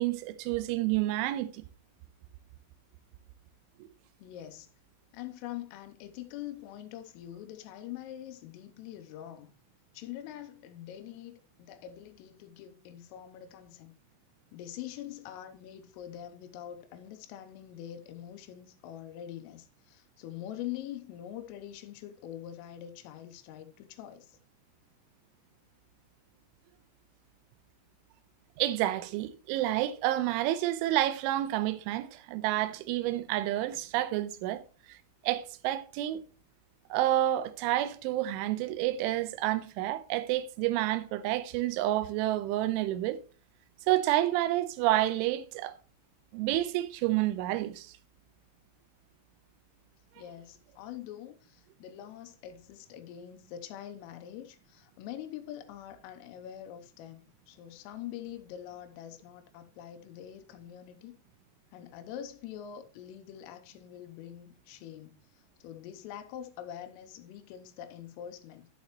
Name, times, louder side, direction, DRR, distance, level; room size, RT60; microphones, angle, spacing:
voice 1, 0.0-1.6 28.6-34.6 34.9-35.0 35.2-36.2 36.9-43.2 43.9-45.8 46.3-47.9, right 14 dB, 80° right, 3.0 m, -29 dB
voice 2, 4.2-4.7 5.1-9.6 9.9-13.9 14.5-24.4 50.2-61.2 61.7-68.7, left 11 dB, 90° left, 3.4 m, -44 dB
11.5 x 7.4 x 3.0 m
omnidirectional pair, 5.8 m